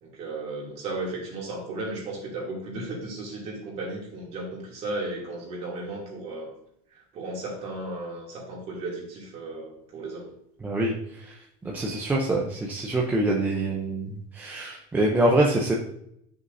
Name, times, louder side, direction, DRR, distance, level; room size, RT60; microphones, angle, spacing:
voice 1, 0.0-6.5 6.9-10.3, right 2 dB, 35° right, -3 dB, 2.6 m, -35 dB
voice 2, 10.6-10.9 11.7-14.1 14.4-15.7, right 1 dB, 10° right, -2 dB, 0.6 m, -24 dB
10.5 x 6.4 x 2.6 m, 0.73 s
cardioid pair, 175°, 20 cm